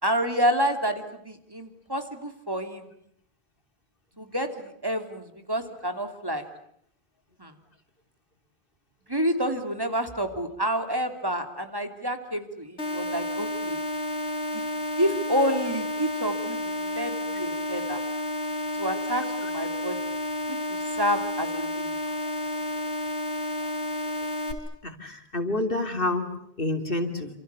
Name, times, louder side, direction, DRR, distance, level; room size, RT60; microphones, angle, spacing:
voice 1, 0.0-2.8 4.2-4.5 4.8-6.4 7.4-7.5 9.1-13.8 14.5-14.6 15.0-18.0 18.8-19.2 19.5-19.9 20.7-21.9, equal, 20° right, 6 dB, 3.0 m, -28 dB
sound 1, 12.8-24.5, left 1 dB, 80° left, 3.8 m, -31 dB
voice 2, 24.8-26.3 26.6-27.3, left 2 dB, 55° left, 6 dB, 3.3 m, -28 dB
29.0 x 27.5 x 7.0 m, 0.70 s
omnidirectional pair, 1.1 m